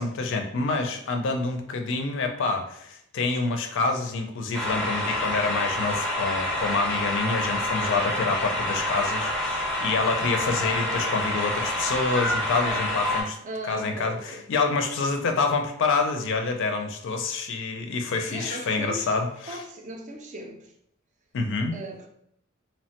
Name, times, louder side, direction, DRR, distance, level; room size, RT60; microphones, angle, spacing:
voice 1, 0.0-13.4 13.7-19.6 21.3-21.8, left 3 dB, 60° left, 0.4 m, -27 dB
sound 1, 4.5-13.2, left 1 dB, 5° left, 0.6 m, -27 dB
voice 2, 13.4-14.5 18.3-19.1 19.5-20.7 21.7-22.1, right 1 dB, 35° right, 0.4 m, -37 dB
2.9 x 2.1 x 2.8 m
head